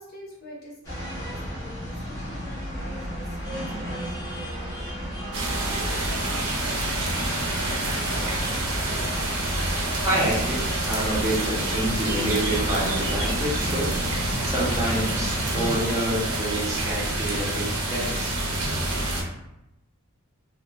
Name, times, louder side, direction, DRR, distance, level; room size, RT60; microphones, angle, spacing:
voice 1, 0.0-8.8, left 1 dB, 45° left, -5 dB, 0.7 m, -44 dB
sound 1, 0.8-15.8, equal, 20° left, 0.8 m, -33 dB
sound 2, 5.3-19.2, right 2 dB, 85° right, 0.7 m, -28 dB
voice 2, 10.0-18.3, right 1 dB, 15° right, -6 dB, 0.6 m, -28 dB
2.9 x 2.3 x 2.2 m, 0.87 s
head